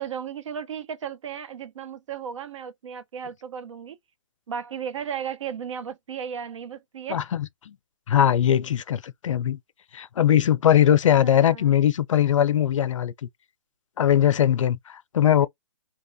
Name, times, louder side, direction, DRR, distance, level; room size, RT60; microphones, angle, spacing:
voice 1, 0.0-4.0 4.5-7.2 11.2-11.7 15.4-15.5, right 8 dB, 75° right, 0.6 m, -35 dB
voice 2, 7.1-7.8 8.1-9.6 9.9-13.1 14.0-15.5, left 10 dB, 85° left, 0.4 m, -20 dB
2.9 x 2.3 x 2.5 m
hypercardioid pair, 155°, 16 cm